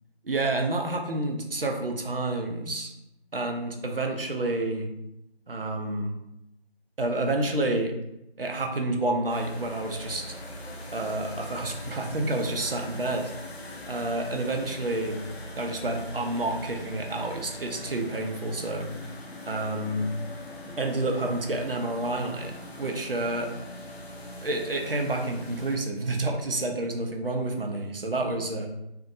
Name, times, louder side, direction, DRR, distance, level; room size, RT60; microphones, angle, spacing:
voice 1, 0.2-2.9 3.3-4.9 5.5-6.1 7.0-7.9 8.4-10.2 10.9-13.3 13.9-15.2 15.6-18.9 19.5-20.1 20.8-22.5 22.8-23.5 24.4-28.7, right 2 dB, 60° right, 2 dB, 0.5 m, -29 dB
sound 1, 9.3-25.8, left 1 dB, 80° left, 0.6 m, -42 dB
2.6 x 2.1 x 2.5 m, 0.87 s
figure-of-eight pair, 175°, 32 cm